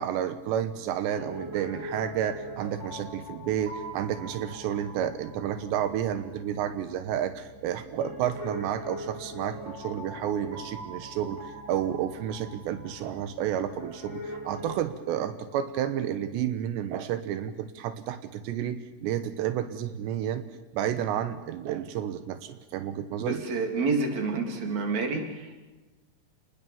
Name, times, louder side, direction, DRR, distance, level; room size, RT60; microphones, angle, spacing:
voice 1, 0.0-20.4 20.7-23.4, right 10 dB, 85° right, 10 dB, 3.3 m, -31 dB
Piano, 1.1-14.8, equal, 25° right, 4.3 m, -42 dB
voice 2, 23.2-25.6, right 3 dB, 45° right, 3 dB, 3.9 m, -29 dB
30.0 x 20.5 x 7.1 m, 1.2 s
omnidirectional pair, 4.9 m